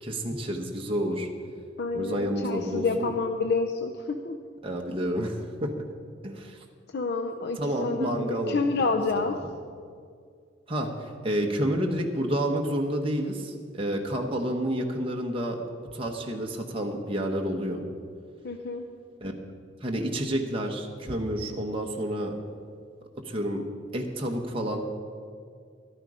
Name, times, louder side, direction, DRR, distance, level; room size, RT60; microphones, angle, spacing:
voice 1, 0.0-1.3 1.9-3.1 4.6-5.7 6.2-6.6 7.6-8.9 9.2-9.4 10.7-15.6 15.9-17.8 19.2-19.3 19.8-22.4 23.2-23.6 23.9-24.8, equal, 30° right, 1 dB, 1.1 m, -29 dB
voice 2, 1.8-4.4 6.9-9.3 18.4-18.8, left 4 dB, 60° left, 5 dB, 0.6 m, -28 dB
13.5 x 12.0 x 4.9 m, 2.2 s
head